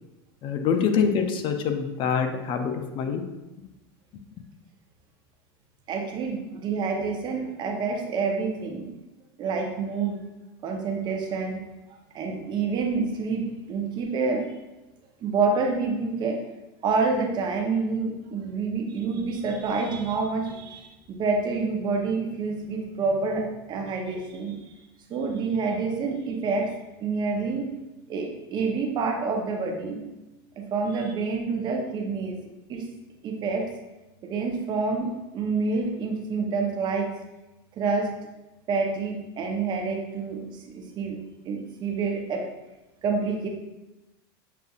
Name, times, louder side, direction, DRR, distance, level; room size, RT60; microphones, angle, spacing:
voice 1, 0.4-3.2 4.4-4.5, left 6 dB, 40° left, 6 dB, 0.4 m, -25 dB
voice 2, 5.9-8.9 9.4-10.2 10.6-11.6 12.1-14.5 15.2-16.4 16.8-24.5 25.1-26.7 27.0-27.7 28.1-30.0 30.6-32.4 32.7-32.9 33.2-33.7 34.2-37.1 37.8-38.1 38.7-41.2 41.4-42.4 43.0-43.5, right 4 dB, 35° right, 2 dB, 0.7 m, -27 dB
6.8 x 2.4 x 2.3 m, 1.0 s
supercardioid pair, 125°, 13 cm